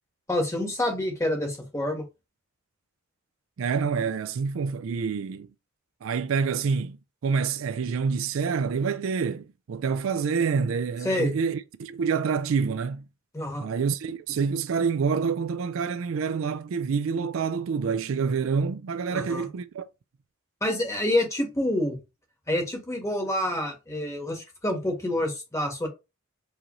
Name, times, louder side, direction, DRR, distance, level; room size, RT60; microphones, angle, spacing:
voice 1, 0.3-2.0 11.0-11.3 13.3-13.7 19.1-19.4 20.6-22.0 22.5-25.9, left 1 dB, 15° left, 1.3 m, -27 dB
voice 2, 3.6-5.5 6.0-7.0 7.2-13.0 13.6-19.8, right 5 dB, 70° right, 0.4 m, -27 dB
4.8 x 2.6 x 3.0 m
head